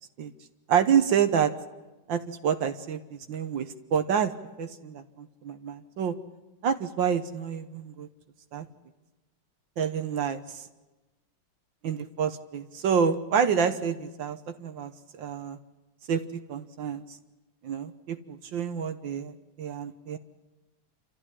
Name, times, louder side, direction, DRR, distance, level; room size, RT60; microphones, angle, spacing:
voice 1, 0.7-1.5 2.1-3.0 3.3-4.3 4.6-6.2 6.6-8.1 8.5-8.7 9.8-10.6 11.8-14.9 15.2-15.6 16.1-17.0 17.6-20.2, right 7 dB, 65° right, 9 dB, 1.6 m, -28 dB
28.0 x 14.0 x 10.0 m, 1.1 s
omnidirectional pair, 2.4 m